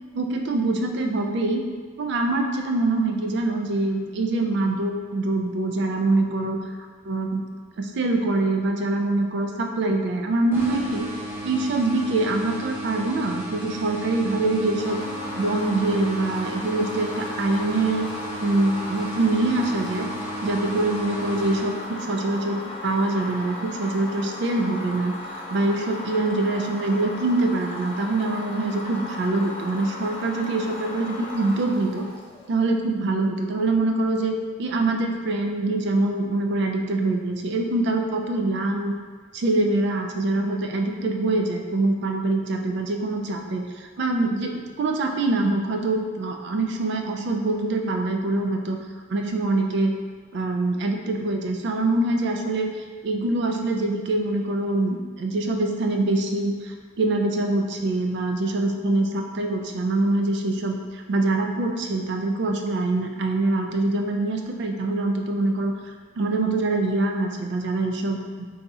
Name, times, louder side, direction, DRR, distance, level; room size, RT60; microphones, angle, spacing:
voice 1, 0.1-1.6 2.0-6.6 7.1-7.4 7.8-11.1 11.4-15.0 15.3-18.1 18.4-20.1 20.4-25.1 25.5-32.1 32.5-34.3 34.6-38.9 39.3-48.8 49.1-49.9 50.3-52.7 53.0-65.8 66.2-68.4, right 2 dB, 60° right, 3 dB, 0.3 m, -24 dB
sound 1, 10.5-22.2, equal, 10° right, 0.7 m, -35 dB
sound 2, 14.8-32.7, left 1 dB, 30° left, 0.4 m, -36 dB
2.6 x 2.4 x 4.0 m, 1.5 s
head